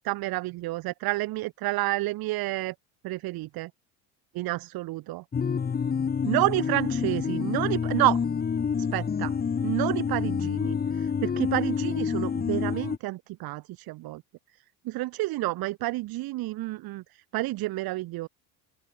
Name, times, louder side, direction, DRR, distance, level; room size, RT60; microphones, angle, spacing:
voice 1, 0.0-2.7 3.0-3.7 4.4-5.2 6.3-8.2 8.8-9.3 9.6-14.2 14.9-17.0 17.3-18.3, right 19 dB, 55° right, 1.8 m, -29 dB
sound 1, 5.3-13.0, left 6 dB, 20° left, 1.4 m, -28 dB
open air
supercardioid pair, 95°, 43 cm